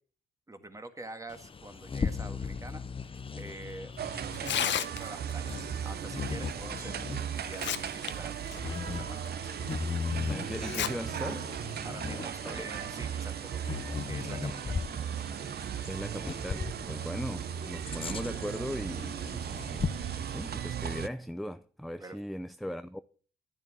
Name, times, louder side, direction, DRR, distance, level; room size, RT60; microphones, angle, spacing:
voice 1, 0.5-3.9 4.2-9.5 11.8-14.8 22.0-22.2, right 2 dB, 15° right, 2.0 m, -46 dB
Bird vocalization bird call bird song, 1.3-20.7, left 5 dB, 25° left, 0.8 m, -39 dB
sound 1, 4.0-21.1, right 9 dB, 55° right, 0.7 m, -37 dB
Tearing, 4.3-5.3 6.8-6.9 7.4-8.1 8.5-8.6 9.3-9.4 10.6-10.9 11.3-11.4 12.2-12.5, left 10 dB, 65° left, 1.0 m, -32 dB
voice 2, 10.3-11.6 12.1-12.7 15.9-23.0, equal, ahead, 0.5 m, -39 dB
11.0 x 10.5 x 6.1 m
cardioid pair, 90°, 20 cm